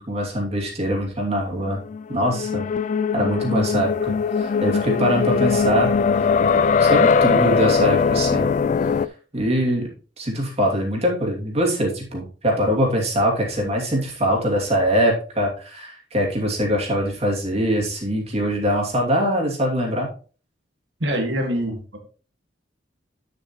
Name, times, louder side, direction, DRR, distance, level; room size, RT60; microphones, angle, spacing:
voice 1, 0.0-1.8 2.1-2.6 3.1-5.9 6.5-8.5 9.3-9.9 10.2-20.1, equal, 35° right, -1 dB, 2.7 m, -23 dB
sound 1, 1.8-9.1, left 5 dB, 40° left, 0.3 m, -20 dB
voice 2, 21.0-22.0, equal, 65° right, 1 dB, 1.9 m, -24 dB
9.6 x 6.8 x 3.1 m, 0.38 s
head